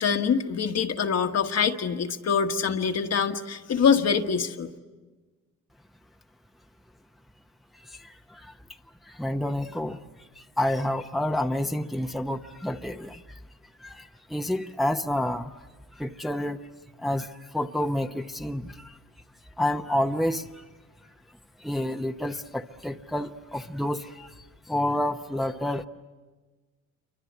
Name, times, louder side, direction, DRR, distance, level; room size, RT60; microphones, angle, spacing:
voice 1, 0.0-4.7, left 6 dB, 55° left, 5 dB, 1.5 m, -24 dB
voice 2, 7.8-8.5 9.1-10.0 10.4-13.4 13.8-15.6 15.9-16.6 17.0-19.0 19.6-20.6 21.6-25.9, left 1 dB, ahead, 5 dB, 0.8 m, -29 dB
28.5 x 24.5 x 8.1 m, 1.3 s
cardioid pair, 90°, 30 cm